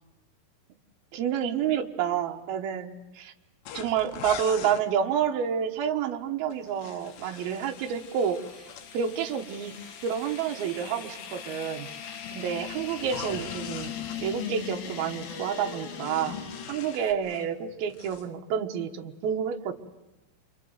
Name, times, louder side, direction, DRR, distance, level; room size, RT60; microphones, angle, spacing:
voice 1, 1.1-3.3 3.7-8.4 8.9-9.7 10.0-11.9 12.3-13.9 14.2-16.4 16.7-19.7, right 8 dB, 70° right, 4 dB, 3.0 m, -29 dB
sound 1, 3.7-4.9 6.5-8.9 13.0-14.2 15.6-17.5 17.8-18.3, left 9 dB, 80° left, 3.4 m, -42 dB
sound 2, 7.0-17.1, left 8 dB, 65° left, 3.5 m, -40 dB
27.5 x 24.5 x 8.0 m, 1.0 s
omnidirectional pair, 4.9 m